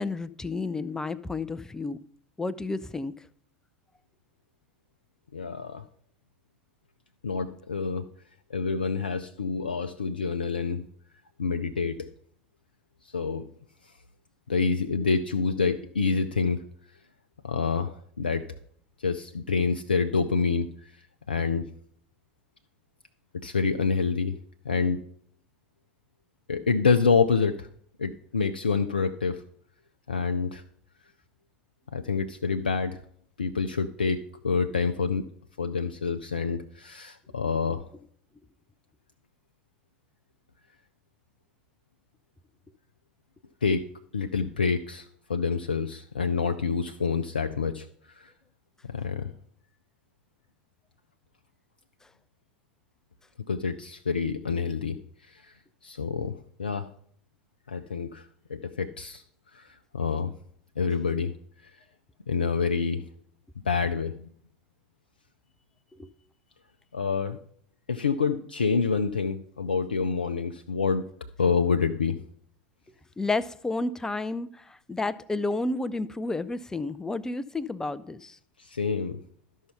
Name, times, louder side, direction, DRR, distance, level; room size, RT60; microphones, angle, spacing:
voice 1, 0.0-2.0 2.4-3.1 66.0-66.1 73.2-78.4, left 3 dB, 10° left, 0.5 m, -31 dB
voice 2, 5.3-5.8 7.2-8.1 8.5-10.9 11.4-12.1 13.0-13.5 13.8-13.9 14.5-16.6 17.4-18.4 19.0-21.7 23.3-24.4 24.6-25.1 26.5-27.7 28.0-29.4 30.1-30.6 31.9-33.0 33.4-35.2 35.6-37.9 43.6-48.3 48.8-49.3 53.5-55.0 55.2-55.5 55.8-56.9 57.7-59.2 59.5-60.3 60.8-61.3 61.6-61.7 62.3-63.0 63.7-64.2 66.9-67.4 67.9-71.1 71.4-72.2 78.6-79.2, left 5 dB, 80° left, 0.4 m, -27 dB
12.5 x 5.5 x 5.6 m
figure-of-eight pair, 75°, 5 cm